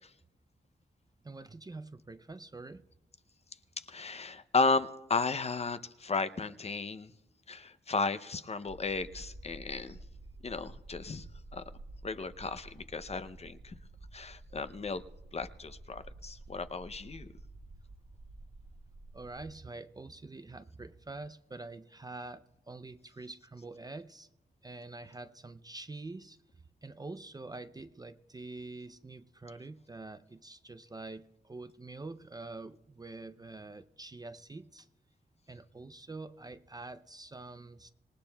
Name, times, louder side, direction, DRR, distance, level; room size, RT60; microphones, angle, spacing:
voice 1, 1.2-2.8 19.1-24.3 24.6-26.4 26.8-34.9 35.5-37.9, right 3 dB, 20° right, 0.4 m, -46 dB
voice 2, 3.8-7.1 7.5-10.0 10.4-11.3 11.5-11.6 12.0-13.8 14.1-15.0 15.3-17.3, left 4 dB, 35° left, 0.5 m, -34 dB
sound 1, 8.7-19.6, right 2 dB, 40° right, 0.8 m, -51 dB
26.5 x 19.0 x 2.2 m
wide cardioid pair, 140°, 18 cm